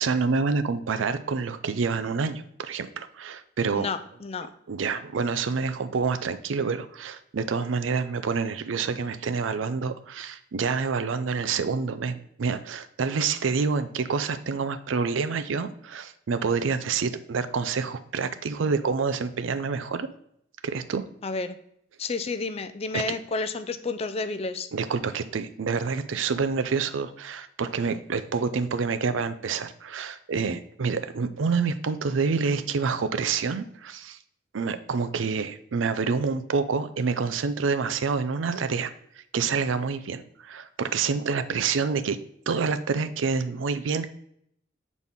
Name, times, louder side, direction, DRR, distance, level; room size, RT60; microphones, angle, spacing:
voice 1, 0.0-3.9 4.7-20.1 20.6-21.0 22.9-23.0 24.7-34.2 34.5-38.9 39.3-42.2 42.5-44.1, right 5 dB, 80° right, 11 dB, 0.5 m, -27 dB
voice 2, 3.7-4.5 21.2-21.6 22.0-24.7, left 3 dB, 30° left, 10 dB, 0.4 m, -31 dB
7.3 x 4.1 x 3.5 m, 0.71 s
head